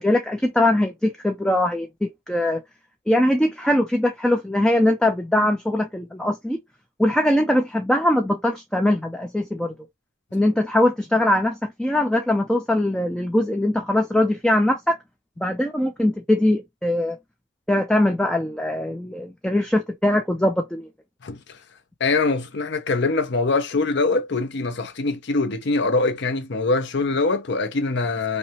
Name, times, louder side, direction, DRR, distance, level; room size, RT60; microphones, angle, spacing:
voice 1, 0.0-2.6 3.1-6.6 7.0-9.7 10.3-15.0 15.4-17.2 17.7-20.9, left 1 dB, 5° left, 0.3 m, -21 dB
voice 2, 21.2-21.6 22.0-28.4, left 3 dB, 50° left, 0.6 m, -23 dB
5.2 x 2.1 x 2.8 m
head